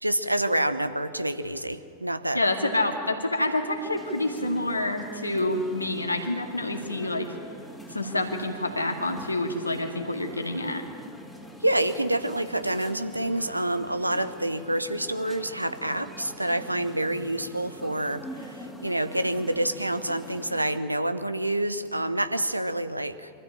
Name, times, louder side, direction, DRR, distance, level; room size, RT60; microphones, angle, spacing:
voice 1, 0.0-2.4 11.6-23.3, right 1 dB, 85° right, 12 dB, 0.9 m, -27 dB
voice 2, 2.3-7.3 7.9-10.8, left 1 dB, 85° left, 3 dB, 2.2 m, -27 dB
sound 1, 3.5-20.8, equal, ahead, 2.3 m, -44 dB
23.5 x 14.5 x 8.9 m, 2.7 s
figure-of-eight pair, 90°, 0 cm